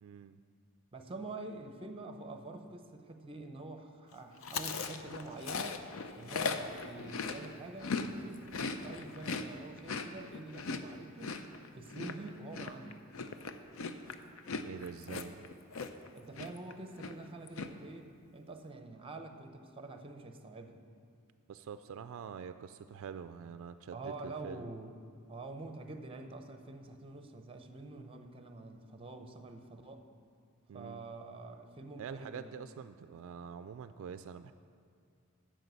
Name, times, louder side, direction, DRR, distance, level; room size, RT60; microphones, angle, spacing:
voice 1, 0.0-0.4 14.6-15.4 21.5-24.7 30.7-31.1 32.0-34.5, right 7 dB, 65° right, 11 dB, 0.3 m, -45 dB
voice 2, 0.9-5.8 6.2-8.5 8.8-11.4 11.7-13.1 16.1-20.8 23.9-25.0 25.3-30.0 30.7-32.5, right 2 dB, 25° right, 6 dB, 0.7 m, -46 dB
Chewing mastication, 4.4-8.1 8.4-16.1 16.4-16.7 17.0-17.7, left 4 dB, 70° left, 0.6 m, -38 dB
9.1 x 6.3 x 8.1 m, 2.3 s
head